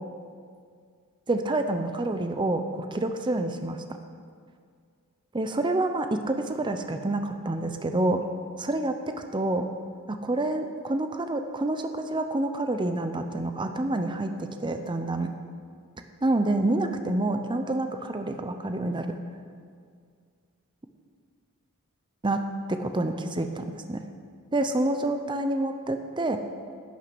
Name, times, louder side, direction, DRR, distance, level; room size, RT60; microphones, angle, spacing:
voice 1, 1.3-3.8 5.3-8.2 8.6-9.7 10.1-15.3 16.2-19.1 22.2-22.4 22.7-24.0 24.5-26.4, right 2 dB, 20° right, 7 dB, 0.6 m, -28 dB
11.0 x 9.4 x 6.1 m, 2.1 s
head